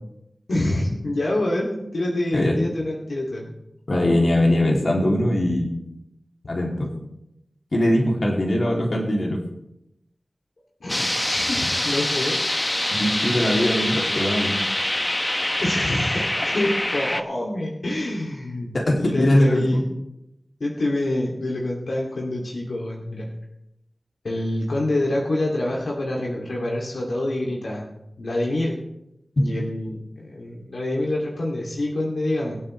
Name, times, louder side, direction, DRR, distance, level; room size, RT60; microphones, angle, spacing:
voice 1, 0.5-3.5 10.8-12.4 15.6-19.8 20.6-23.3 24.2-27.8 28.2-28.8 29.4-32.6, left 1 dB, 85° left, -3 dB, 2.7 m, -26 dB
voice 2, 3.9-5.7 6.5-6.9 7.7-9.4 12.9-14.5 18.7-19.8, left 1 dB, 65° left, -1 dB, 2.9 m, -21 dB
sound 1, 10.9-17.2, left 1 dB, 25° left, 0.9 m, -25 dB
23.5 x 8.6 x 3.3 m, 0.85 s
cardioid pair, 45°, 0 cm